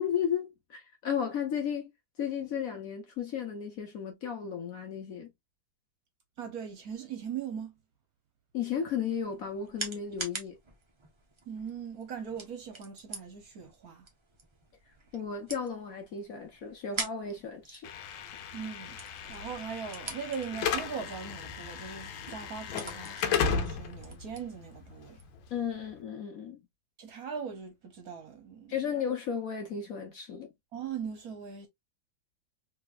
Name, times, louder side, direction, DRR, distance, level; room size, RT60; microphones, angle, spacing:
voice 1, 0.0-1.9 2.2-5.3 8.5-10.6 15.1-17.9 25.5-26.6 28.7-30.5, left 7 dB, 55° left, 1.2 m, -34 dB
voice 2, 6.4-7.8 11.5-14.1 18.5-25.2 27.0-29.0 30.7-31.7, right 7 dB, 60° right, 1.2 m, -40 dB
sound 1, 9.0-25.4, right 3 dB, 40° right, 0.4 m, -46 dB
Slam / Alarm, 17.8-25.9, left 6 dB, 90° left, 1.4 m, -35 dB
3.3 x 3.2 x 2.4 m
omnidirectional pair, 2.0 m